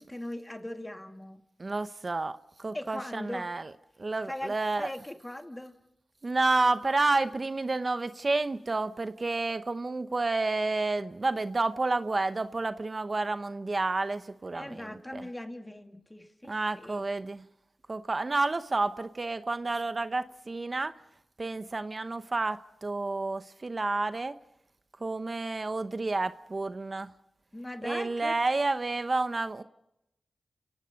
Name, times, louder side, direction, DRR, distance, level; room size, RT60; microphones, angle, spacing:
voice 1, 0.0-1.4 2.7-3.5 4.3-5.7 14.5-17.1 27.5-28.4, left 1 dB, 20° left, 6 dB, 2.3 m, -40 dB
voice 2, 1.6-3.7 4.0-4.9 6.2-15.2 16.4-17.4 17.9-20.9 21.4-24.3 25.0-27.1 27.8-29.6, right 3 dB, 45° right, 11 dB, 0.9 m, -30 dB
30.0 x 18.0 x 5.3 m, 0.83 s
cardioid pair, 50°, 0 cm